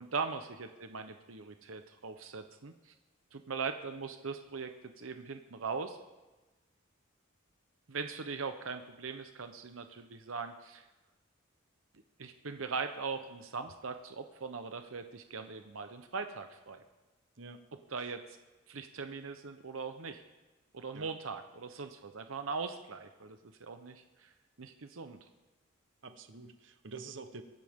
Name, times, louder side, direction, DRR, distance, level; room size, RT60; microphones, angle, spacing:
voice 1, 0.0-2.7 3.3-6.0 7.9-10.8 12.2-16.8 17.9-18.2 18.7-20.2 20.7-24.3 24.6-25.2, right 5 dB, 85° right, 7 dB, 0.9 m, -40 dB
voice 2, 26.0-27.4, right 4 dB, 65° right, 8 dB, 1.0 m, -47 dB
23.5 x 11.5 x 3.7 m, 1.1 s
head